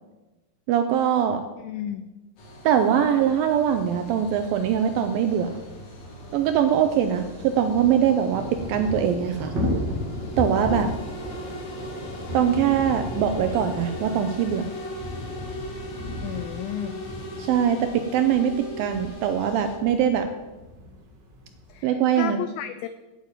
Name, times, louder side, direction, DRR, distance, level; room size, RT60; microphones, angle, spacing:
voice 1, 0.7-1.4 2.6-5.6 6.3-9.5 10.4-10.9 12.3-14.7 17.4-20.3 21.8-22.4, right 9 dB, 80° right, 7 dB, 2.1 m, -22 dB
voice 2, 1.6-2.1 16.2-17.0 21.7-22.9, left 11 dB, 90° left, 11 dB, 2.1 m, -33 dB
sound 1, 2.4-19.8, left 1 dB, 60° left, 4.1 m, -40 dB
Thunder / Rain, 5.3-5.4 5.6-5.7 6.0-21.9, left 1 dB, 45° right, 1.4 m, -35 dB
9.1 x 8.5 x 8.9 m, 1.1 s
omnidirectional pair, 4.8 m